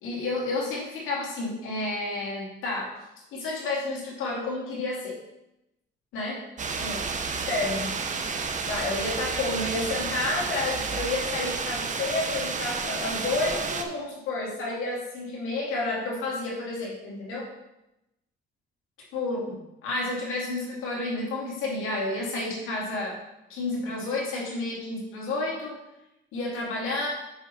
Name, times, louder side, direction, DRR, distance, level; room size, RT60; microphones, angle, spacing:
voice 1, 0.0-2.9 3.3-5.2 6.1-6.4 6.8-7.0 7.3-8.0 8.7-17.5 19.1-23.2 23.5-25.8 26.3-27.1, left 2 dB, 90° left, -4 dB, 2.5 m, -30 dB
sound 1, 6.6-13.8, right 5 dB, 40° right, 0.8 m, -31 dB
6.9 x 5.7 x 4.2 m, 0.89 s
cardioid pair, 90°, 20 cm